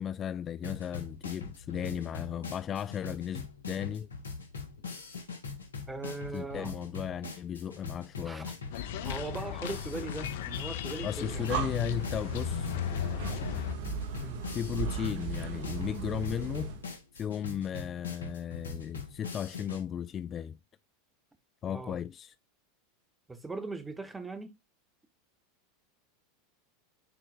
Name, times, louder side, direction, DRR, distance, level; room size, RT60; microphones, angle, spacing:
voice 1, 0.0-4.1 6.3-8.5 11.0-12.7 14.5-16.7 17.2-20.6 21.6-22.3, left 9 dB, 35° left, 0.3 m, -35 dB
sound 1, 0.6-19.8, left 4 dB, 90° left, 1.6 m, -42 dB
voice 2, 5.9-6.7 8.2-8.5 9.0-11.8 14.1-14.4 21.7-22.0 23.3-24.6, right 3 dB, 10° right, 1.4 m, -40 dB
sound 2, 8.7-13.7, left 10 dB, 70° left, 1.0 m, -36 dB
Breathing, 11.1-16.9, right 6 dB, 60° right, 1.5 m, -37 dB
9.9 x 4.4 x 2.3 m
hypercardioid pair, 90°, 0 cm